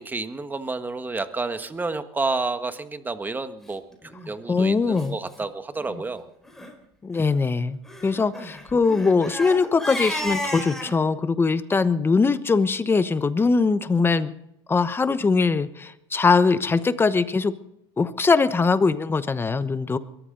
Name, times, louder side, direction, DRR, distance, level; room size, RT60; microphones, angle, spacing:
voice 1, 0.0-3.8 4.3-6.2, right 3 dB, 15° right, 10 dB, 1.4 m, -30 dB
Crying sobbing, 4.0-4.3 5.0-5.1 5.3-5.4 5.8-6.0 6.5-6.7 7.9-10.9, left 1 dB, 5° left, 4.8 m, -32 dB
voice 2, 4.5-5.2 7.0-7.8 8.0-14.3 14.7-17.5 18.0-20.0, left 4 dB, 20° left, 14 dB, 1.0 m, -21 dB
22.0 x 14.0 x 3.9 m, 0.80 s
supercardioid pair, 105°, 12 cm